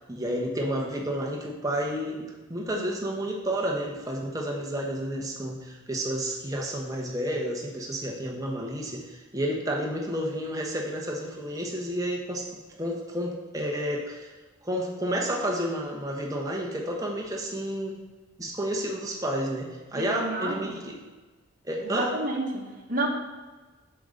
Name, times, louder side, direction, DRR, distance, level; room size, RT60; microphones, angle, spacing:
voice 1, 0.1-12.5 12.8-14.3 14.6-18.0 18.4-21.0 21.6-22.1, equal, 15° right, -1 dB, 0.9 m, -31 dB
voice 2, 19.9-20.8 21.8-23.1, right 2 dB, 40° right, -1 dB, 1.2 m, -30 dB
7.6 x 6.5 x 3.8 m, 1.3 s
head